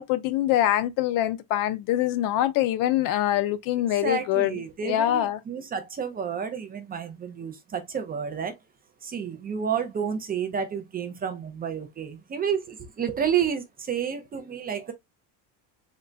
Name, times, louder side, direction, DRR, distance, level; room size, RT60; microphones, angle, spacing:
voice 1, 0.0-4.5 4.8-5.4, left 12 dB, 50° left, 0.5 m, -24 dB
voice 2, 4.0-8.6 9.0-14.9, right 7 dB, 20° right, 0.4 m, -30 dB
3.9 x 2.1 x 3.3 m
cardioid pair, 140°, 43 cm